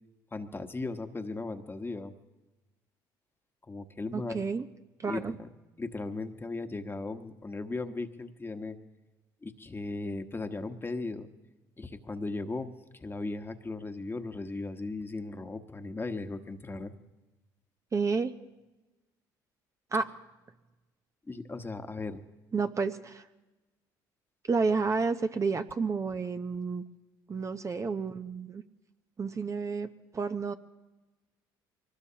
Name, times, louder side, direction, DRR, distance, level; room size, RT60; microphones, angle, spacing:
voice 1, 0.3-2.1 3.7-4.5 5.0-5.5 5.8-8.8 9.4-11.3 11.8-16.9 21.3-22.2, left 3 dB, 20° left, 7 dB, 1.3 m, -37 dB
voice 2, 4.1-4.7 5.0-5.3 17.9-18.3 19.9-20.1 22.5-23.2 24.5-26.8 27.3-28.6 29.2-30.5, right 4 dB, 30° right, 8 dB, 0.8 m, -30 dB
24.0 x 19.5 x 2.9 m, 1.1 s
hypercardioid pair, 65°, 10 cm